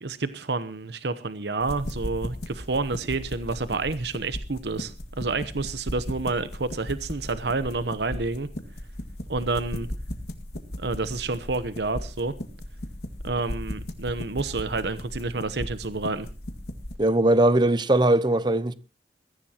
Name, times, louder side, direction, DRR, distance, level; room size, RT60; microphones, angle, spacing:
voice 1, 0.0-8.5 9.3-9.9 10.8-12.3 13.2-16.3, right 3 dB, 70° right, 0.9 m, -29 dB
sound 1, 1.6-17.0, left 1 dB, 60° left, 2.0 m, -37 dB
voice 2, 17.0-18.7, right 1 dB, 25° right, 0.8 m, -20 dB
21.5 x 15.0 x 2.9 m
head